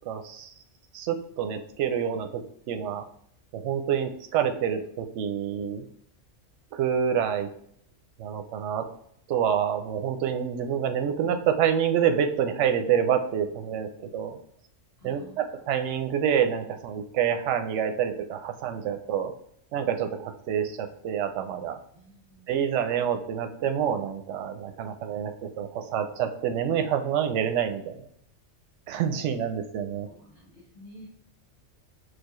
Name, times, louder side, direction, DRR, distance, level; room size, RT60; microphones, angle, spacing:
voice 1, 0.1-0.5 0.9-2.4 2.7-3.0 3.5-5.8 6.7-7.5 8.2-8.9 9.3-14.4 15.0-19.3 19.7-21.8 22.5-28.1 28.9-30.1, right 8 dB, 70° right, 7 dB, 0.8 m, -27 dB
voice 2, 15.0-15.7 21.9-22.6 30.0-31.1, right 1 dB, 30° left, -7 dB, 1.4 m, -51 dB
6.5 x 2.3 x 3.0 m, 0.69 s
omnidirectional pair, 1.3 m